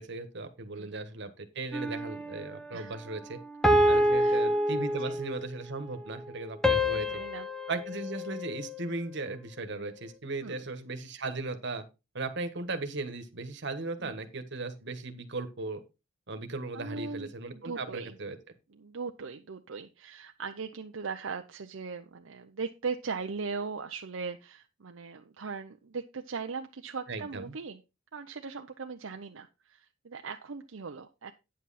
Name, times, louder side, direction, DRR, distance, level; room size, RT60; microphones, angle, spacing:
voice 1, 0.0-3.4 3.9-7.1 7.7-11.8 12.1-15.8 16.3-18.4 27.1-27.5, right 3 dB, 60° right, 8 dB, 1.5 m, -37 dB
sound 1, 1.7-2.4 3.6-5.4 6.6-9.0, equal, 5° left, 0.9 m, -27 dB
voice 2, 4.2-4.5 5.0-5.2 6.9-7.5 10.4-10.6 14.0-14.2 16.7-18.2 18.7-27.8 28.1-31.3, right 5 dB, 75° right, 5 dB, 0.7 m, -39 dB
9.6 x 7.5 x 4.2 m, 0.27 s
head